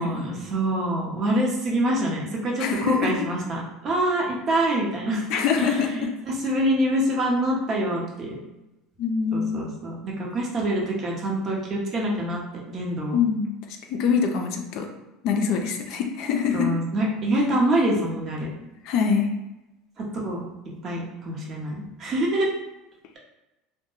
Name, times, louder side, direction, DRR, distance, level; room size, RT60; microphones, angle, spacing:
voice 1, 0.0-5.2 5.6-8.4 9.3-12.4 12.7-13.2 16.5-18.5 20.0-22.5, right 1 dB, 40° right, -2 dB, 0.8 m, -25 dB
voice 2, 2.6-3.1 5.3-6.1 9.0-9.7 13.1-13.5 13.9-14.9 15.2-16.7 18.8-19.3, left 6 dB, 65° left, 4 dB, 0.4 m, -24 dB
2.2 x 2.2 x 3.0 m, 0.98 s
supercardioid pair, 95°, 0 cm